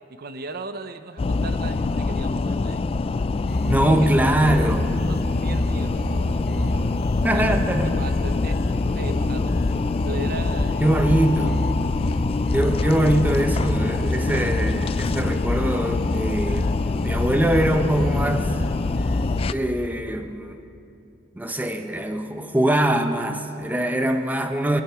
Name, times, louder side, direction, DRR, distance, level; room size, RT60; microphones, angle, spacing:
voice 1, 0.1-2.9 3.8-4.8 5.1-6.9 7.3-11.5, right 3 dB, 55° right, 10 dB, 0.6 m, -37 dB
sound 1, 1.2-19.5, left 3 dB, 30° left, 0.3 m, -25 dB
sound 2, 3.5-19.5, left 1 dB, 55° left, 0.8 m, -29 dB
voice 2, 3.6-4.9 7.2-7.9 10.8-11.6 12.5-16.7 17.0-18.5 19.5-20.6 21.4-24.8, right 1 dB, 10° right, 6 dB, 0.7 m, -22 dB
sound 3, 13.1-17.9, equal, 75° right, 2.7 m, -45 dB
23.0 x 8.6 x 6.1 m, 2.7 s
head